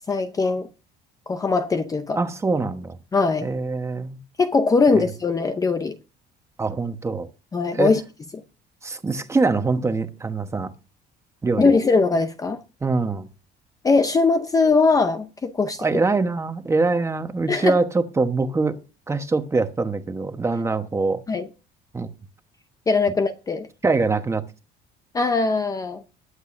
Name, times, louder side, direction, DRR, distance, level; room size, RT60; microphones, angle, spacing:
voice 1, 0.1-0.7 1.3-2.2 3.1-3.5 4.4-6.0 7.5-8.0 11.6-12.6 13.8-15.8 17.5-17.8 21.3-21.5 22.9-23.7 25.1-26.0, left 4 dB, 20° left, 0.7 m, -20 dB
voice 2, 2.2-3.0 3.4-4.2 5.0-5.1 6.6-7.3 7.7-7.9 8.8-10.7 11.4-11.7 12.8-13.3 15.8-18.8 19.1-21.2 21.9-22.1 23.8-24.4, right 3 dB, 15° right, 1.1 m, -23 dB
21.0 x 7.9 x 2.6 m
cardioid pair, 150°, 19 cm